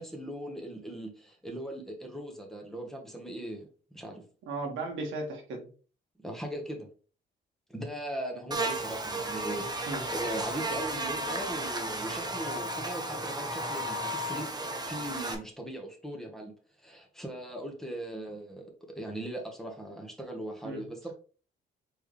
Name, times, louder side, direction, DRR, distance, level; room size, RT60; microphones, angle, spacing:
voice 1, 0.0-3.7 3.9-4.2 6.2-6.9 7.7-14.5 14.9-16.5 16.8-21.1, right 1 dB, ahead, 0 dB, 1.3 m, -39 dB
voice 2, 4.4-5.7 9.9-10.1 20.6-20.9, right 2 dB, 80° right, 2 dB, 1.5 m, -36 dB
Buzz, 8.5-15.3, right 1 dB, 20° right, 0.9 m, -34 dB
4.5 x 3.4 x 3.2 m, 0.39 s
cardioid pair, 90°, 20 cm